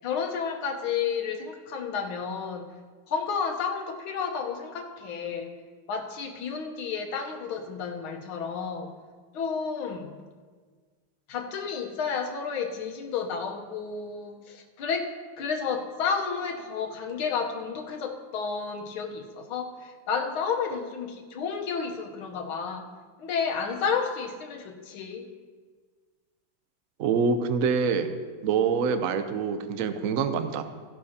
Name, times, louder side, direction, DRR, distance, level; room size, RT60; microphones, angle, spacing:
voice 1, 0.0-2.7 3.1-5.5 5.9-8.9 9.3-10.1 11.3-15.1 15.4-22.9 23.2-25.3, left 6 dB, 80° left, 3 dB, 1.8 m, -31 dB
voice 2, 27.0-28.1 28.4-30.6, right 5 dB, 70° right, 9 dB, 0.8 m, -25 dB
15.0 x 11.5 x 2.8 m, 1.5 s
omnidirectional pair, 2.3 m